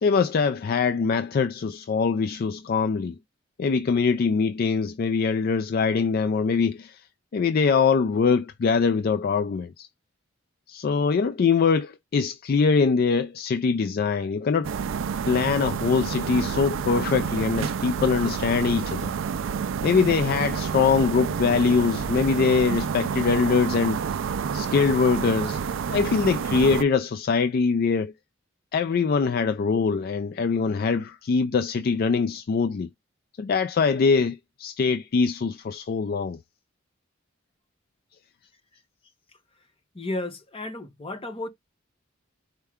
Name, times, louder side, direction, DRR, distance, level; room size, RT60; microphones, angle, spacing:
voice 1, 0.0-3.2 3.6-7.0 7.3-9.9 10.7-14.7 15.3-19.1 19.8-24.0 24.5-25.6 25.9-28.1 28.7-32.9 33.4-36.4, left 5 dB, 50° left, 0.3 m, -23 dB
sound 1, 14.6-26.8, right 6 dB, 70° right, 0.3 m, -29 dB
sound 2, 16.4-22.8, equal, 10° left, 1.8 m, -49 dB
voice 2, 39.9-41.5, left 2 dB, 30° left, 1.1 m, -33 dB
4.5 x 2.2 x 3.5 m
head